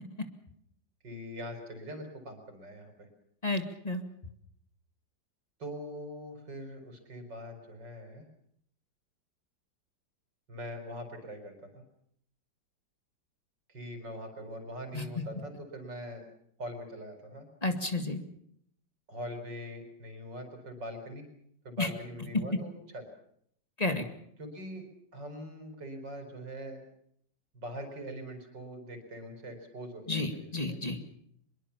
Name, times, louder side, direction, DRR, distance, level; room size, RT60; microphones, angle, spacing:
voice 1, 1.0-3.1 5.6-8.3 10.5-11.8 13.7-16.2 16.6-17.5 19.1-21.3 21.6-23.0 24.4-24.8 25.1-26.8 27.5-30.8, equal, 70° right, 7 dB, 4.9 m, -42 dB
voice 2, 3.4-4.0 14.9-15.0 17.6-18.2 21.8-21.9 23.8-24.0 30.1-31.0, left 2 dB, 20° left, 7 dB, 2.0 m, -31 dB
24.0 x 22.0 x 7.1 m, 0.69 s
omnidirectional pair, 2.0 m